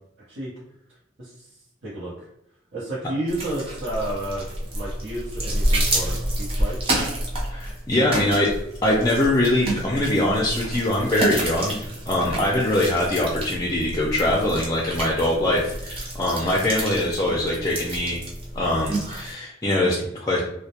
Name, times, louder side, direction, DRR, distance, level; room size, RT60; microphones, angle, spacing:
voice 1, 2.7-4.4 4.7-6.9 12.5-12.8, right 1 dB, 75° right, -10 dB, 0.8 m, -31 dB
sound 1, 3.3-19.3, right 1 dB, 30° right, 0.6 m, -29 dB
voice 2, 7.5-8.5 8.8-18.2 18.5-20.4, left 1 dB, 20° left, -3 dB, 0.4 m, -23 dB
2.1 x 2.1 x 2.8 m, 0.79 s
head